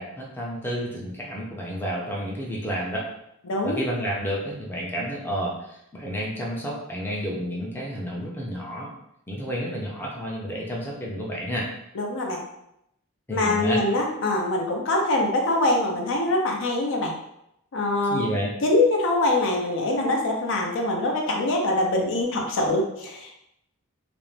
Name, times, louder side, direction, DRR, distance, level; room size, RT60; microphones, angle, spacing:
voice 1, 0.0-3.1 3.6-8.9 9.3-11.7 13.3-13.8 18.1-18.5, equal, 10° left, -4 dB, 0.4 m, -30 dB
voice 2, 3.5-3.8 12.0-12.4 13.3-17.1 17.7-18.2 18.6-23.4, left 2 dB, 65° left, 0 dB, 0.5 m, -24 dB
2.5 x 2.0 x 3.1 m, 0.80 s
head